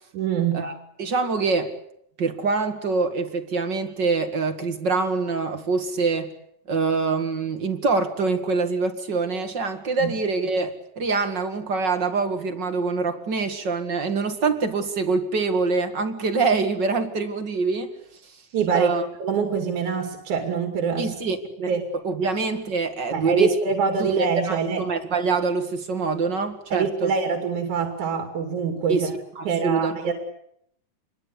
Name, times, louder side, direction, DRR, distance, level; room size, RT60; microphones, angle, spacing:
voice 1, 0.1-0.7 10.0-10.1 18.5-18.9 19.2-21.1 21.7-21.8 23.1-24.8 26.7-29.1 29.5-30.1, right 6 dB, 65° right, 4 dB, 4.0 m, -24 dB
voice 2, 1.0-1.7 2.2-6.3 6.7-17.9 18.2-18.3 18.7-19.1 21.0-21.7 22.0-27.1 28.9-30.1, right 4 dB, 40° right, 7 dB, 2.2 m, -25 dB
27.5 x 22.0 x 8.2 m, 0.73 s
omnidirectional pair, 3.8 m